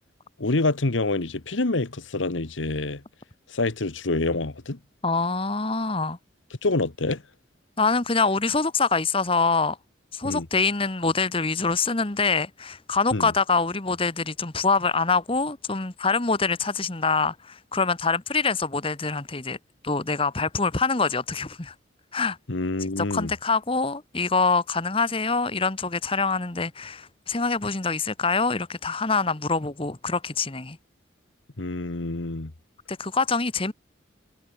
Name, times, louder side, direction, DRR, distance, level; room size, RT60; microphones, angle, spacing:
voice 1, 0.4-3.0 3.5-4.8 6.6-7.2 10.2-10.5 13.1-13.3 22.5-23.3 31.6-32.5, left 2 dB, 85° left, 1.4 m, -26 dB
voice 2, 5.0-6.2 7.8-9.8 10.1-19.6 19.8-21.7 22.1-22.4 23.0-30.8 32.9-33.7, left 4 dB, 30° left, 1.3 m, -25 dB
head